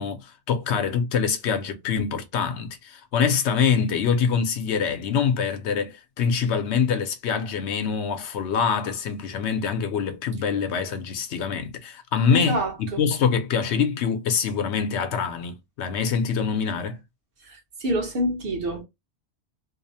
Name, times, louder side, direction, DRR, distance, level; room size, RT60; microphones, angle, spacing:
voice 1, 0.0-17.0, left 6 dB, 75° left, 0.9 m, -25 dB
voice 2, 12.3-13.0 17.5-18.8, equal, 55° right, 1.0 m, -27 dB
2.7 x 2.0 x 2.6 m
omnidirectional pair, 1.2 m